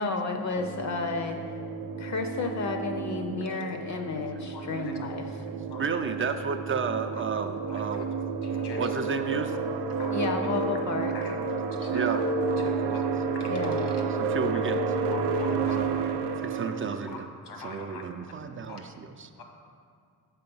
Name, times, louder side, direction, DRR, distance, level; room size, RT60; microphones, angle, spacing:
voice 1, 0.0-1.4 2.0-5.4 10.1-11.1 13.5-13.8, left 4 dB, 45° left, 5 dB, 0.5 m, -32 dB
sound 1, 0.6-17.1, right 4 dB, 85° right, 0.5 m, -30 dB
voice 2, 4.0-4.3 4.7-4.9 5.5-8.1 8.8-9.6 10.8-10.9 11.8-12.2 12.8-12.9 14.1-14.8 15.2-16.1 16.4-17.3 17.6-19.3, right 5 dB, 35° right, 7 dB, 0.4 m, -33 dB
voice 3, 4.5-5.0 5.7-5.9 7.7-8.0 8.4-8.8 9.9-10.5 11.1-11.4 11.6-13.1 13.3-14.0 15.1-15.8 17.1-18.0 18.7-18.8 19.4-19.5, left 4 dB, 80° left, 2 dB, 1.3 m, -45 dB
5.9 x 5.8 x 5.3 m, 2.2 s
cardioid pair, 115°, 39 cm